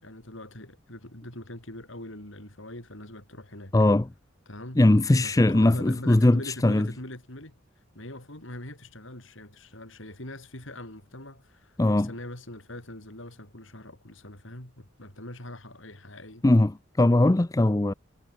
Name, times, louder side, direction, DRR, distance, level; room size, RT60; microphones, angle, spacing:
voice 1, 0.0-3.7 4.5-4.8 5.2-7.5 7.9-16.5, left 1 dB, 65° left, 5.8 m, -42 dB
voice 2, 3.7-4.1 4.8-6.9 11.8-12.1 16.4-17.9, left 1 dB, 15° left, 0.5 m, -20 dB
head